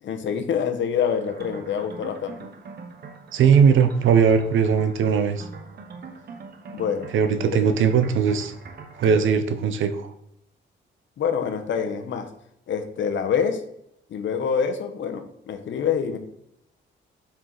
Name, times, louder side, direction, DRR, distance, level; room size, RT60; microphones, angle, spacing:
voice 1, 0.0-2.5 6.7-7.1 7.5-7.6 11.2-12.3 12.7-13.6 14.1-16.2, left 7 dB, 70° left, 6 dB, 1.0 m, -26 dB
sound 1, 1.2-9.3, right 5 dB, 55° right, 1.0 m, -42 dB
voice 2, 3.3-5.5 7.1-8.5 9.0-10.1, right 6 dB, 80° right, 9 dB, 0.8 m, -19 dB
7.7 x 4.4 x 4.0 m, 0.75 s
cardioid pair, 130°, 20 cm